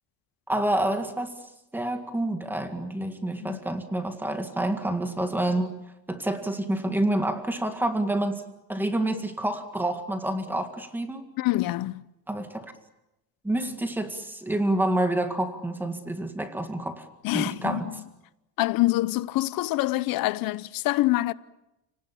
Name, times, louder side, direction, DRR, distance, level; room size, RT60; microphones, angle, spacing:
voice 1, 0.5-1.3 1.7-5.7 6.1-8.4 8.7-11.2 12.3-12.7 13.4-17.1 17.3-17.9, right 1 dB, 5° right, 1.9 m, -28 dB
voice 2, 11.4-12.0 17.2-18.0 18.6-21.3, left 18 dB, 60° left, 0.9 m, -26 dB
30.0 x 18.5 x 8.6 m
cardioid pair, 175°, 39 cm